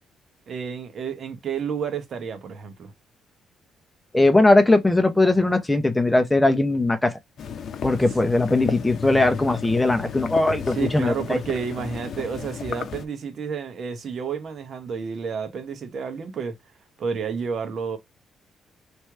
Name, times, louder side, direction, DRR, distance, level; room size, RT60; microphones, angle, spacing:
voice 1, 0.5-2.9 10.7-16.5 17.0-18.0, right 6 dB, 55° right, 1.1 m, -30 dB
voice 2, 4.1-7.2 7.8-11.4, left 2 dB, 10° left, 0.8 m, -19 dB
sound 1, 7.4-13.0, left 7 dB, 60° left, 0.7 m, -33 dB
3.2 x 3.0 x 4.6 m
cardioid pair, 90°, 0 cm